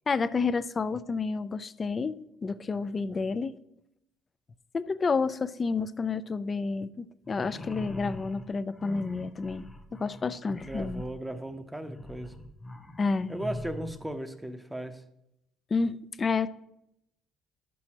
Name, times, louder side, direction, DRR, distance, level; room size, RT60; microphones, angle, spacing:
voice 1, 0.1-3.6 4.7-9.7 10.0-11.0 13.0-13.3 15.7-16.5, left 4 dB, 30° left, 14 dB, 0.4 m, -30 dB
sound 1, 7.2-14.0, left 1 dB, 15° left, 1.1 m, -43 dB
voice 2, 10.5-12.3 13.3-15.0, right 1 dB, 10° right, 8 dB, 0.7 m, -37 dB
11.0 x 6.2 x 2.9 m, 0.83 s
supercardioid pair, 90°, 0 cm